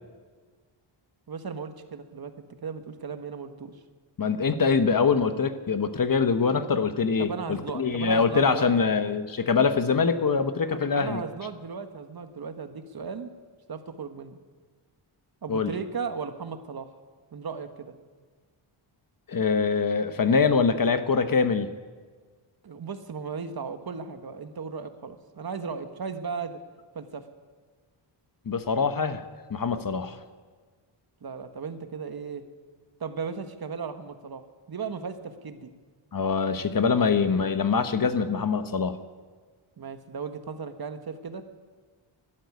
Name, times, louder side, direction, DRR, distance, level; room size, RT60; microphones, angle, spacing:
voice 1, 1.3-3.7 7.2-8.7 10.7-13.3 13.7-14.4 15.4-16.9 17.3-17.9 22.6-26.6 26.9-27.3 31.2-32.4 33.0-35.7 39.8-41.4, right 5 dB, 45° right, 9 dB, 1.4 m, -36 dB
voice 2, 4.2-11.2 15.5-15.7 19.3-21.7 28.5-29.2 29.5-30.2 36.1-39.0, left 5 dB, 40° left, 10 dB, 1.1 m, -24 dB
12.5 x 12.0 x 9.5 m, 1.5 s
wide cardioid pair, 100°, 49 cm